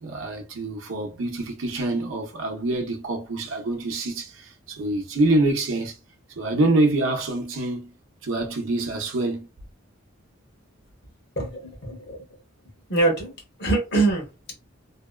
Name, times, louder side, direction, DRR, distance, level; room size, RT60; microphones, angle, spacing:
voice 1, 0.0-6.0 6.4-7.9 8.2-9.5, right 2 dB, 75° right, 0.6 m, -25 dB
voice 2, 11.4-12.2 12.9-13.3 13.6-14.2, right 2 dB, 55° left, 1.1 m, -23 dB
2.7 x 2.1 x 2.2 m
head